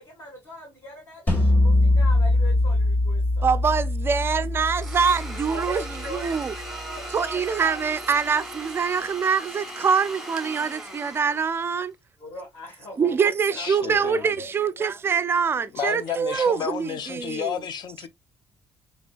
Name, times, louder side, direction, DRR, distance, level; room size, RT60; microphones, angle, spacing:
voice 1, 0.0-3.5 5.5-7.8 12.2-15.0, left 1 dB, 35° left, 1.7 m, -41 dB
sound 1, 1.3-6.3, left 2 dB, 20° left, 2.1 m, -22 dB
voice 2, 3.4-5.8 6.1-6.5 7.1-11.9 13.0-17.6, right 6 dB, 25° right, 0.4 m, -24 dB
Domestic sounds home sounds, 4.8-11.8, right 1 dB, 5° right, 0.9 m, -38 dB
voice 3, 13.5-14.4 15.7-18.1, left 8 dB, 55° left, 0.6 m, -31 dB
4.2 x 3.4 x 2.2 m
cardioid pair, 150°, 9 cm